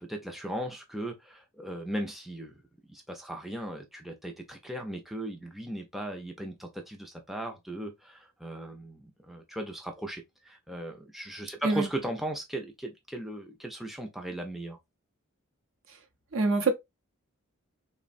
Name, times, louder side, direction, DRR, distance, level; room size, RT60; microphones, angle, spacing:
voice 1, 0.0-2.6 2.9-14.8, right 1 dB, ahead, 0.4 m, -37 dB
voice 2, 16.3-16.7, right 3 dB, 65° right, 0.6 m, -24 dB
3.3 x 2.1 x 2.4 m
head